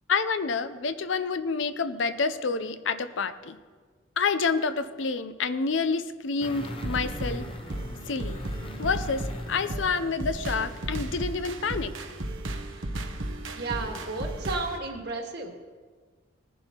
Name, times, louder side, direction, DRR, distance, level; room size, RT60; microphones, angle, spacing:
voice 1, 0.1-3.6 4.2-7.5 8.1-8.4 8.8-11.9, left 4 dB, 70° left, 12 dB, 0.6 m, -28 dB
sound 1, 6.4-11.3 11.6-11.7, left 1 dB, 25° left, 0.6 m, -41 dB
sound 2, 6.5-14.8, right 1 dB, 75° right, 1.0 m, -35 dB
voice 2, 13.6-15.5, right 3 dB, 55° right, 2 dB, 1.7 m, -33 dB
19.0 x 11.0 x 3.0 m, 1.5 s
head